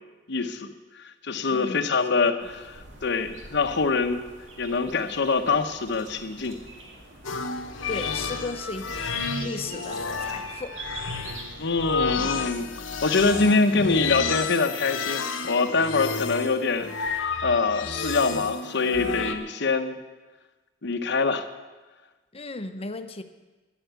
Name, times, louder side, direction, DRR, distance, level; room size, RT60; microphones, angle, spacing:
voice 1, 0.3-4.2 4.6-6.6 11.6-12.7 13.0-20.0 20.8-21.5, left 4 dB, 60° left, 9 dB, 1.0 m, -25 dB
voice 2, 1.5-2.0 7.9-10.8 22.3-23.2, left 3 dB, 30° left, 9 dB, 0.9 m, -36 dB
sound 1, 2.4-13.0, right 2 dB, 70° right, 2.2 m, -45 dB
sound 2, 7.2-19.3, left 4 dB, 85° left, 1.3 m, -31 dB
11.5 x 10.5 x 8.2 m, 1.2 s
head